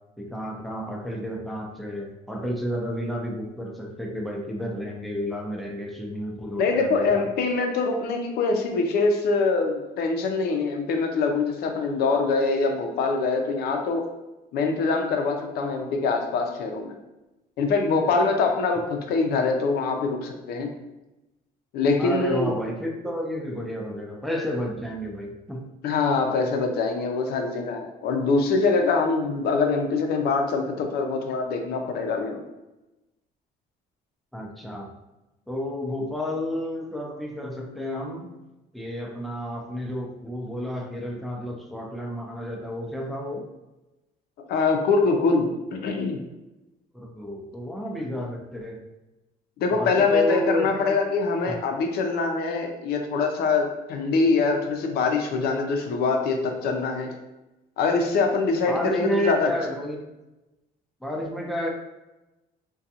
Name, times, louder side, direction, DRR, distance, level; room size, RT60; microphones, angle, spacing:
voice 1, 0.2-7.3 22.0-25.7 34.3-34.9 35.5-38.3 38.7-43.5 46.9-48.8 49.7-50.9 51.5-51.6 58.6-60.0 61.0-61.7, equal, ahead, 0 dB, 0.4 m, -31 dB
voice 2, 6.5-14.0 14.5-17.0 17.6-20.7 21.7-22.5 25.8-32.4 44.5-46.2 49.6-57.1 57.8-59.5, left 4 dB, 70° left, 3 dB, 0.5 m, -24 dB
2.4 x 2.3 x 2.7 m, 1.0 s
cardioid pair, 110°, 17 cm